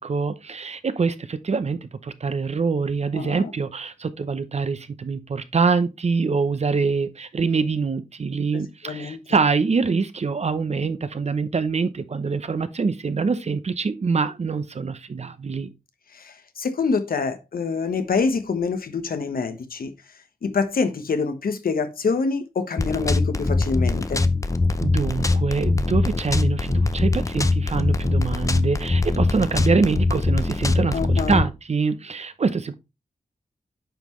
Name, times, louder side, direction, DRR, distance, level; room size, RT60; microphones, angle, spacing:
voice 1, 0.0-15.7 24.8-32.7, right 4 dB, 45° right, 0.7 m, -25 dB
voice 2, 3.1-3.5 8.8-9.2 16.1-19.9 20.4-24.3 30.9-31.4, left 4 dB, 80° left, 1.2 m, -26 dB
sound 1, 22.8-31.4, left 3 dB, 20° left, 0.6 m, -22 dB
9.0 x 5.7 x 3.1 m
wide cardioid pair, 130°, 15 cm